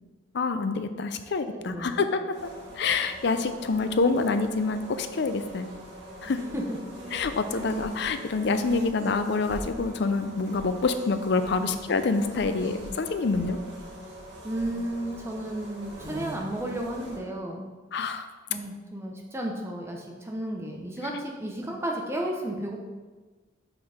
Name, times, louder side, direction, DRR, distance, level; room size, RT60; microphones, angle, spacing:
voice 1, 0.3-5.7 6.2-6.4 7.1-13.6 17.9-18.3, left 4 dB, 60° left, 9 dB, 0.5 m, -27 dB
voice 2, 1.5-2.0 6.5-6.8 7.5-7.6 11.6-11.8 12.6-13.0 13.4-13.7 14.4-17.7 18.5-22.8, right 1 dB, 15° right, 0 dB, 0.7 m, -33 dB
sound 1, 2.3-17.2, right 1 dB, 60° right, 1.6 m, -41 dB
5.8 x 4.4 x 4.9 m, 1.3 s
head